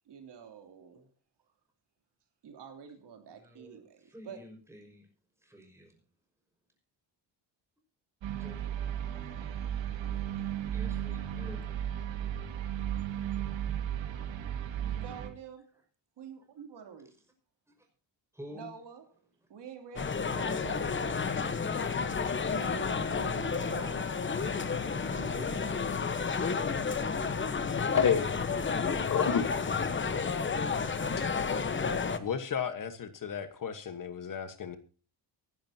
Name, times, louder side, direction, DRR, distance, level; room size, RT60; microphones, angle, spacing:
voice 1, 0.1-1.1 2.4-4.4 14.8-15.8 16.2-17.1 18.5-19.2 19.5-21.4 22.5-24.3, right 7 dB, 65° right, 3.0 m, -47 dB
voice 2, 3.3-5.1 5.4-6.0 8.4-8.7 9.9-11.7 13.2-13.3 15.7-15.8 17.7-17.9 18.3-18.7 19.4-19.5 24.6-26.2, equal, 5° right, 5.7 m, -50 dB
sound 1, 8.2-15.3, right 10 dB, 85° right, 2.2 m, -35 dB
sound 2, 20.0-32.2, left 5 dB, 25° left, 1.1 m, -31 dB
voice 3, 27.9-28.3 28.8-29.5 32.2-34.8, left 7 dB, 45° left, 1.4 m, -31 dB
24.0 x 11.5 x 2.8 m
cardioid pair, 155°, 44 cm